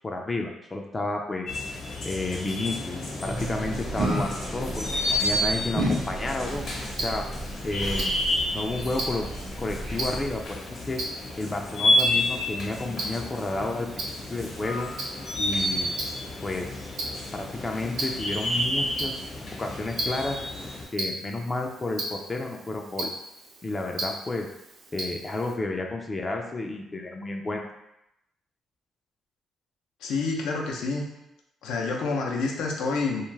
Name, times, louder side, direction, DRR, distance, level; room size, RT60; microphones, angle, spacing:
voice 1, 0.0-1.6 2.0-6.6 7.0-7.3 7.6-8.2 8.5-9.3 9.6-11.0 11.4-14.9 15.4-15.9 16.4-16.9 17.3-19.2 19.6-20.4 20.9-23.1 23.6-24.5 24.9-27.7, left 2 dB, 25° left, 2 dB, 0.4 m, -31 dB
sound 1, 1.5-20.8, left 1 dB, 60° left, 0.9 m, -30 dB
sound 2, 3.2-10.5, right 1 dB, 40° right, 0.5 m, -33 dB
Tick-tock, 6.5-25.5, right 1 dB, 75° right, 0.7 m, -38 dB
voice 2, 30.0-31.1 31.6-33.2, left 3 dB, 90° left, 0 dB, 0.5 m, -28 dB
2.5 x 2.3 x 3.2 m, 0.86 s
cardioid pair, 90°, 0 cm